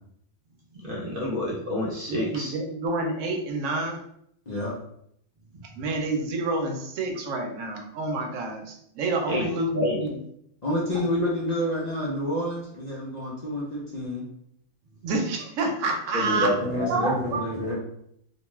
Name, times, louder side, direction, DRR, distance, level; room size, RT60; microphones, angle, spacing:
voice 1, 0.8-2.5 9.3-9.4 9.8-10.0 16.1-16.5 16.8-16.9, left 1 dB, 60° right, -3 dB, 0.6 m, -28 dB
voice 2, 2.1-4.0 5.8-10.2 15.0-16.6 16.9-17.5, right 2 dB, 80° right, 3 dB, 0.9 m, -28 dB
voice 3, 10.6-14.2 16.2-17.8, left 1 dB, 45° left, -6 dB, 0.6 m, -29 dB
2.5 x 2.2 x 3.0 m, 0.73 s
omnidirectional pair, 1.3 m